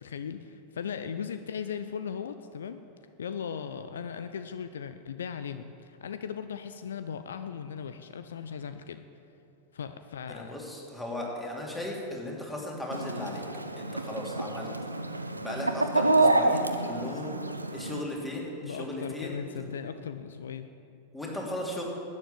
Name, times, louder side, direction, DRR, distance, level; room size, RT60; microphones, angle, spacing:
voice 1, 0.0-2.8 3.2-9.0 9.7-10.5 18.6-20.7, left 7 dB, 65° left, 10 dB, 0.5 m, -38 dB
voice 2, 10.3-13.4 13.8-14.7 15.3-17.4 17.7-19.4 21.1-21.8, left 1 dB, 5° left, -2 dB, 3.0 m, -36 dB
Chicken rooster, 12.9-18.0, right 2 dB, 85° right, 0.7 m, -28 dB
11.5 x 9.6 x 8.9 m, 2.7 s
figure-of-eight pair, 90°, 0 cm